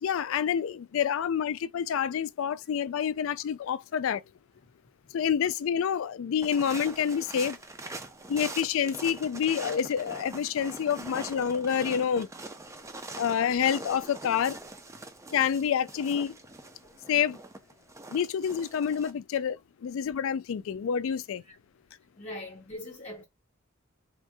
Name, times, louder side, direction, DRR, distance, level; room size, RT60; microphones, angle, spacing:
voice 1, 0.0-4.2 5.1-7.6 8.3-12.3 13.2-14.6 15.3-16.4 17.1-17.4 18.1-21.4, left 8 dB, 65° left, 0.3 m, -28 dB
sound 1, 6.4-19.1, right 2 dB, 15° right, 0.4 m, -43 dB
voice 2, 22.2-23.2, left 1 dB, 30° left, 0.8 m, -42 dB
3.6 x 2.6 x 3.4 m
head